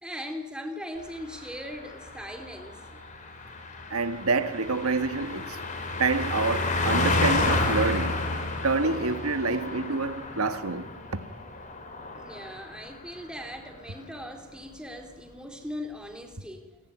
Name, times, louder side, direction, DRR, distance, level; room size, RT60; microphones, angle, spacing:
voice 1, 0.0-2.8 12.1-16.8, equal, 5° right, 3.2 m, -39 dB
Car passing by, 1.0-13.0 13.3-13.5, left 2 dB, 35° left, 4.5 m, -31 dB
voice 2, 3.9-5.6 6.0-8.2 8.6-10.9, right 3 dB, 90° right, 1.5 m, -27 dB
29.5 x 18.5 x 9.4 m
head